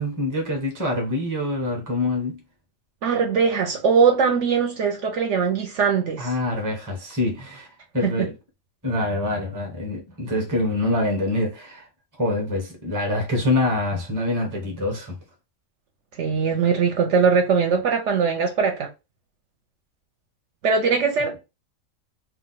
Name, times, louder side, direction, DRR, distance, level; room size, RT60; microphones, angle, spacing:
voice 1, 0.0-2.4 6.2-7.7 7.9-8.3 8.8-11.9 12.2-15.2, left 2 dB, 20° right, 0.7 m, -25 dB
voice 2, 3.0-6.3 8.0-8.3 16.2-18.9 20.6-21.4, right 6 dB, 65° right, 0.9 m, -21 dB
2.5 x 2.2 x 3.8 m
omnidirectional pair, 1.4 m